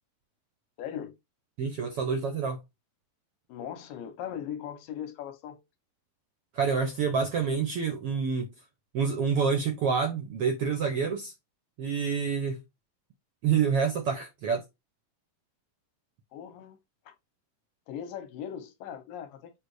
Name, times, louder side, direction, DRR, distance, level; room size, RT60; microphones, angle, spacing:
voice 1, 0.8-1.1 3.5-5.6 16.3-16.8 17.1-17.2 17.9-19.5, left 9 dB, 85° left, 2.7 m, -39 dB
voice 2, 1.6-2.6 6.5-8.5 8.9-11.3 11.8-12.6 13.4-14.6, right 6 dB, 75° right, 1.4 m, -27 dB
8.1 x 2.7 x 4.8 m
omnidirectional pair, 3.8 m